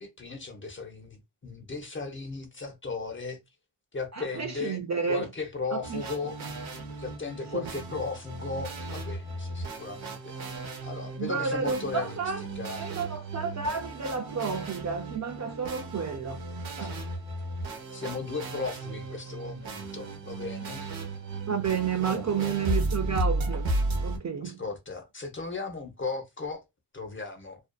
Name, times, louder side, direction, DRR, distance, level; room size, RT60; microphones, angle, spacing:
voice 1, 0.0-3.4 3.9-4.8 5.1-6.4 7.0-12.8 16.8-16.9 17.9-20.9 22.0-22.5 24.4-26.6 26.9-27.6, left 4 dB, 25° left, 0.7 m, -36 dB
voice 2, 4.1-5.3 5.7-6.0 7.5-7.7 11.2-12.4 12.8-16.4 16.8-17.0 21.5-23.7 24.0-24.6, right 6 dB, 40° right, 0.4 m, -31 dB
sound 1, 5.8-24.2, right 2 dB, 75° right, 0.9 m, -35 dB
2.5 x 2.3 x 2.2 m
cardioid pair, 85°, 48 cm